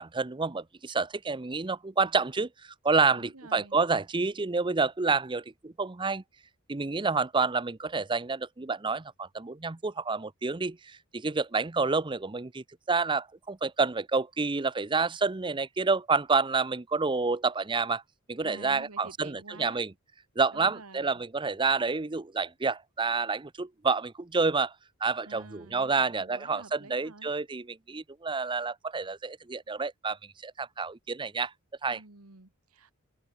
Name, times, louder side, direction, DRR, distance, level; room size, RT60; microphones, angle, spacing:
voice 1, 0.0-6.2 6.7-18.0 18.3-19.9 20.4-24.7 25.0-31.5 31.8-32.0, right 4 dB, 20° right, 0.6 m, -29 dB
voice 2, 3.1-3.8 18.4-19.8 20.5-21.2 25.3-27.3 31.9-32.9, right 3 dB, 90° right, 2.0 m, -49 dB
open air
head